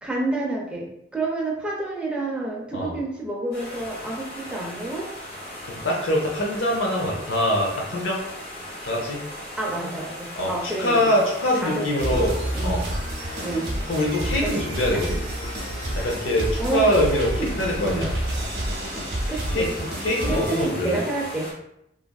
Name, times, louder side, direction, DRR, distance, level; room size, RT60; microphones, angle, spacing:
voice 1, 0.0-5.1 9.6-11.1 11.6-12.2 12.5-12.8 13.4-13.7 14.4-14.5 14.9-15.0 16.6-18.0 19.3-19.7 20.3-21.5, right 2 dB, 5° right, -3 dB, 0.5 m, -29 dB
sound 1, 3.5-21.5, equal, 55° left, 1.0 m, -38 dB
voice 2, 5.7-8.2 8.8-9.2 10.4-12.8 13.9-15.2 15.9-17.3 17.6-18.2 19.5-19.7 20.0-21.0, left 1 dB, 85° left, -2 dB, 0.7 m, -24 dB
sound 2, 12.0-20.6, right 1 dB, 60° right, 0.7 m, -29 dB
3.2 x 2.5 x 2.2 m, 0.79 s
head